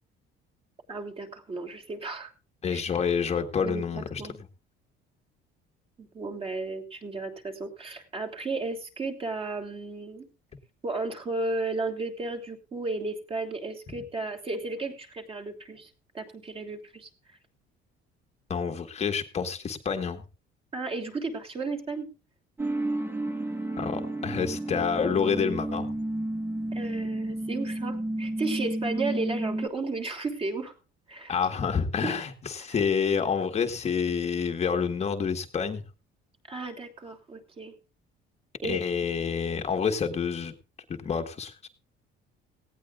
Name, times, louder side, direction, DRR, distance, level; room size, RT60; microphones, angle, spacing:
voice 1, 0.9-2.3 2.7-2.8 3.6-4.3 6.0-10.3 10.8-15.9 16.1-17.1 20.7-22.1 26.7-30.7 31.1-31.3 32.0-32.2 32.7-32.8 36.5-37.7 38.6-38.8, right 3 dB, 30° right, 4 dB, 3.3 m, -34 dB
voice 2, 2.6-4.2 18.5-20.2 23.8-25.9 31.3-35.8 38.6-40.5 40.9-41.5, left 6 dB, 30° left, 5 dB, 1.5 m, -28 dB
sound 1, 22.6-29.7, right 1 dB, 10° right, 1.3 m, -31 dB
18.0 x 17.0 x 2.5 m, 0.34 s
cardioid pair, 155°, 21 cm